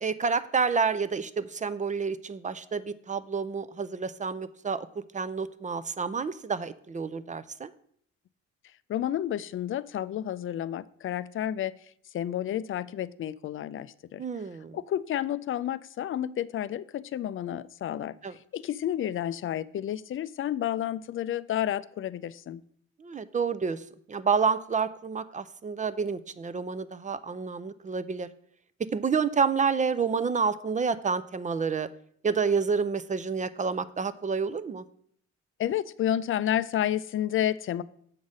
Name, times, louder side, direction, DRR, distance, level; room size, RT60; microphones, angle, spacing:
voice 1, 0.0-4.9 5.1-7.7 14.2-14.8 18.2-18.4 23.0-28.3 28.9-31.9 32.2-34.8, right 5 dB, 25° right, 14 dB, 0.4 m, -29 dB
voice 2, 8.9-11.8 12.1-14.2 14.7-22.6 35.6-37.8, left 11 dB, 45° left, 17 dB, 0.4 m, -30 dB
7.3 x 4.0 x 6.4 m, 0.65 s
cardioid pair, 90°, 30 cm